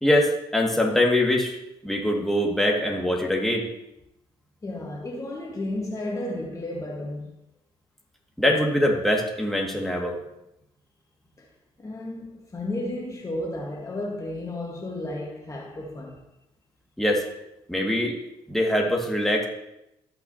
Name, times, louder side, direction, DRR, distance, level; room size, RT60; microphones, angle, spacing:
voice 1, 0.0-1.6 1.8-3.7 8.4-10.2 17.0-17.2 17.7-18.2 18.5-19.4, left 1 dB, ahead, 2.0 m, -23 dB
voice 2, 4.6-7.3 11.4-11.5 11.8-16.2, left 1 dB, 25° left, 1.5 m, -33 dB
13.5 x 5.9 x 2.8 m
supercardioid pair, 70°, 12 cm